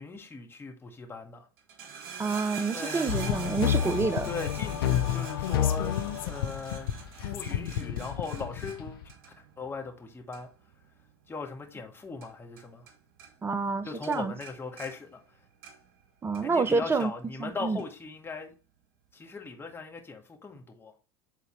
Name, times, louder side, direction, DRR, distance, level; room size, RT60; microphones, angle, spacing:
voice 1, 0.0-1.5 2.7-3.1 4.2-6.9 7.3-9.1 9.6-10.5 11.3-12.9 13.8-15.2 16.4-18.5 19.1-20.9, left 4 dB, 20° left, 2.0 m, -39 dB
sound 1, 1.6-12.9 13.2-13.8 14.0-16.0 16.3-17.1 17.8-17.9, right 6 dB, 60° right, 1.5 m, -44 dB
voice 2, 2.2-4.3 13.4-14.3 16.2-17.1 17.4-17.8, right 4 dB, 20° right, 0.7 m, -28 dB
sound 2, 3.1-9.1, left 10 dB, 75° left, 0.7 m, -30 dB
8.4 x 4.0 x 3.2 m
hypercardioid pair, 75°, 12 cm